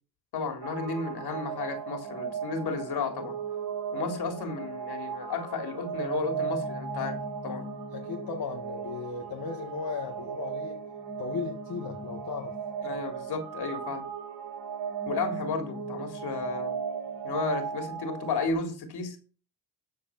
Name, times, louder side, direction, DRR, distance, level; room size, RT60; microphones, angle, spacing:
voice 1, 0.3-3.4 3.9-7.2 7.4-7.7 12.8-14.0 15.1-16.8 17.2-19.2, left 4 dB, 75° left, 3.6 m, -33 dB
sound 1, 0.6-18.5, right 6 dB, 65° right, 3.0 m, -36 dB
voice 2, 7.9-10.8 11.2-12.6, left 5 dB, 60° left, 1.8 m, -36 dB
13.5 x 4.9 x 5.8 m
cardioid pair, 80°, 39 cm